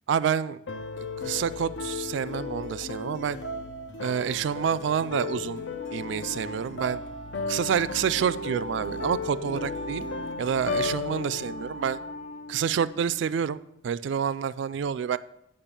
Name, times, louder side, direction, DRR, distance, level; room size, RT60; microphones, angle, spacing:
voice 1, 0.1-0.6 1.0-3.4 4.0-5.6 5.9-7.0 7.5-10.0 10.4-12.0 12.5-15.2, right 7 dB, 70° right, 17 dB, 0.3 m, -28 dB
sound 1, 0.7-12.8, left 3 dB, 75° left, 0.7 m, -35 dB
Wind instrument woodwind instrument, 5.8-13.3, left 1 dB, 40° left, 0.7 m, -41 dB
8.8 x 5.4 x 6.8 m, 0.80 s
head